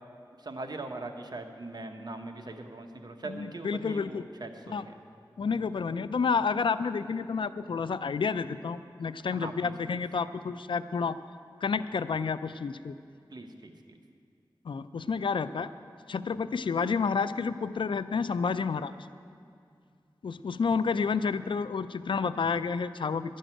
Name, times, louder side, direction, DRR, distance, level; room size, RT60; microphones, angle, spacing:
voice 1, 0.4-5.0 9.3-10.0 13.3-14.0, right 2 dB, 55° right, 5 dB, 1.0 m, -41 dB
voice 2, 3.2-4.2 4.7-4.8 5.4-11.2 11.6-13.0 14.6-15.7 16.1-18.9 20.2-23.4, left 5 dB, 80° left, 13 dB, 0.4 m, -30 dB
12.0 x 6.4 x 9.0 m, 2.3 s
wide cardioid pair, 70°, 8 cm